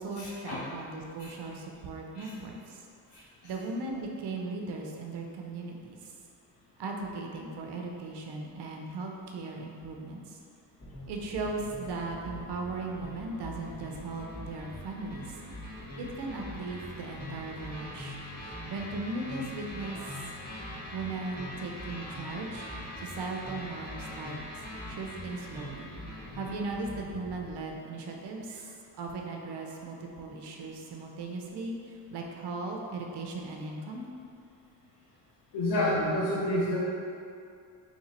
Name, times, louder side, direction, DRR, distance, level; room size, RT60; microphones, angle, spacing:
voice 1, 0.0-2.8 3.1-6.0 6.8-10.4 11.1-15.4 16.0-18.2 18.4-20.0 20.9-22.7 23.0-24.4 24.9-25.9 26.3-28.7 29.0-34.0, right 3 dB, 65° right, 1 dB, 0.7 m, -38 dB
sound 1, 10.8-27.5, left 1 dB, 20° left, 1.2 m, -42 dB
voice 2, 35.5-36.8, left 1 dB, 65° left, -8 dB, 0.8 m, -28 dB
2.9 x 2.7 x 4.2 m, 2.4 s
cardioid pair, 75°, 44 cm